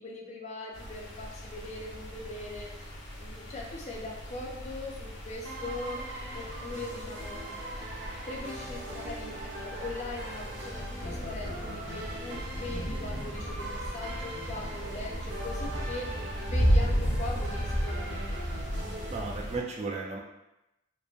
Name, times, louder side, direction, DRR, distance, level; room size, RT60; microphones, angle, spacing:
voice 1, 0.0-2.9 3.2-6.0 6.3-7.5 8.3-18.3, left 2 dB, 40° left, -1 dB, 0.4 m, -41 dB
sound 1, 0.7-19.6, equal, 85° left, 0.7 m, -34 dB
sound 2, 5.4-19.2, right 1 dB, 90° right, 0.6 m, -41 dB
voice 2, 19.1-20.2, right 3 dB, 35° right, -1 dB, 0.4 m, -34 dB
3.0 x 2.1 x 2.4 m, 0.91 s
head